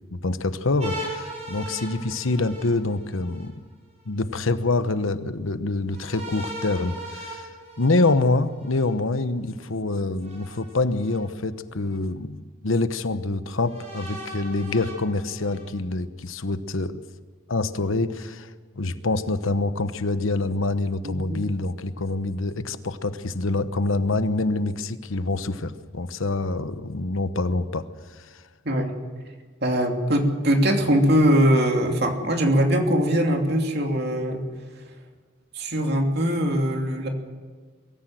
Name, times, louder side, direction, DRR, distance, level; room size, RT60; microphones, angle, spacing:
voice 1, 0.1-3.5 4.1-7.5 7.8-17.0 17.5-27.8 28.1-28.4, left 2 dB, 80° left, 12 dB, 1.0 m, -26 dB
sound 1, 0.8-3.5 5.9-8.9 10.2-11.2 11.9-12.0 13.6-15.6, right 1 dB, 35° right, 7.5 m, -38 dB
voice 2, 21.0-21.4 28.6-28.9 29.6-34.5 35.5-37.1, equal, 50° right, 3 dB, 2.9 m, -21 dB
23.5 x 14.0 x 7.8 m, 1.5 s
head